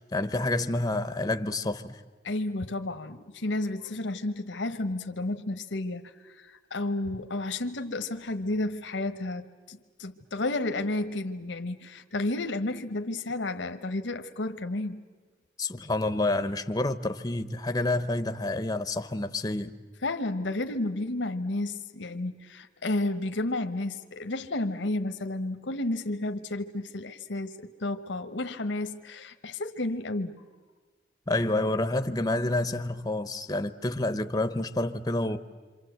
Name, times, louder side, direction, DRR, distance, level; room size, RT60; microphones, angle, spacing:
voice 1, 0.0-2.0 15.6-19.7 31.3-35.4, left 2 dB, 20° left, 0.7 m, -28 dB
voice 2, 2.2-15.0 20.0-30.4, left 2 dB, 85° left, 1.0 m, -32 dB
27.5 x 25.5 x 7.9 m
head